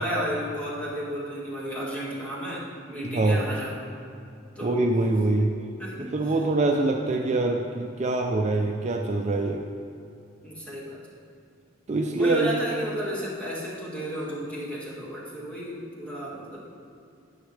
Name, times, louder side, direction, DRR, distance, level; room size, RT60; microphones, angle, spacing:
voice 1, 0.0-3.8 4.6-5.2 5.8-6.5 10.4-11.0 12.2-16.7, equal, 5° left, -7 dB, 1.8 m, -33 dB
voice 2, 3.0-3.5 4.6-5.5 6.0-9.6 11.9-12.6, right 2 dB, 40° right, 2 dB, 0.5 m, -24 dB
9.6 x 9.4 x 3.3 m, 2.5 s
head